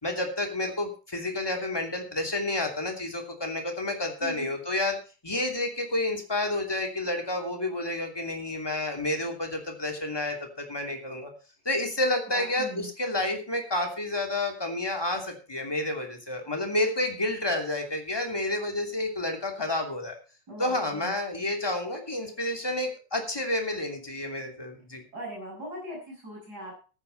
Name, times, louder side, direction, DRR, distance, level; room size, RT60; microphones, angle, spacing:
voice 1, 0.0-5.0 5.2-11.3 11.6-20.1 20.6-25.0, left 1 dB, 10° left, 3 dB, 2.5 m, -30 dB
voice 2, 12.3-12.9 20.5-21.1 25.1-26.7, equal, 30° right, -3 dB, 6.3 m, -40 dB
14.0 x 10.5 x 4.1 m, 0.34 s
omnidirectional pair, 3.4 m